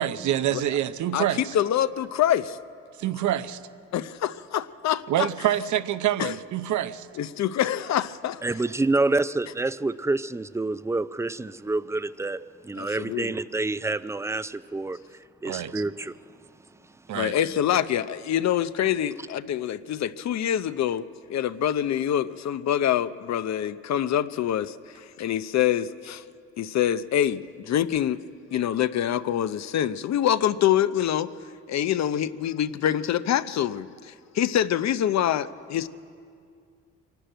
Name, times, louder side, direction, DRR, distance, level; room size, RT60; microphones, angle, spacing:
voice 1, 0.0-1.5 3.0-3.6 5.1-7.1 15.4-15.8 17.1-17.3, right 12 dB, 75° right, 0.8 m, -26 dB
voice 2, 1.1-2.6 3.9-5.3 6.2-6.3 7.2-8.4 12.8-13.3 17.1-26.2 26.6-28.2 28.5-31.3 31.7-35.9, left 10 dB, 65° left, 0.7 m, -25 dB
voice 3, 8.4-16.2, right 2 dB, 10° right, 0.4 m, -28 dB
24.5 x 11.5 x 9.0 m
cardioid pair, 90°, 30 cm